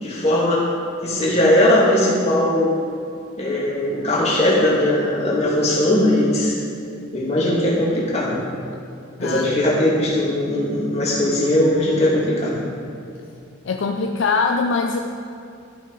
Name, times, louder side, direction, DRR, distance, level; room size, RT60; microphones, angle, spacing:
voice 1, 0.0-0.7 1.0-2.7 3.4-6.5 7.1-8.4 9.2-12.6, left 1 dB, 30° left, -6 dB, 2.3 m, -19 dB
voice 2, 9.2-9.6 13.6-15.0, left 4 dB, 70° left, 3 dB, 0.5 m, -22 dB
13.0 x 5.9 x 4.7 m, 2.5 s
head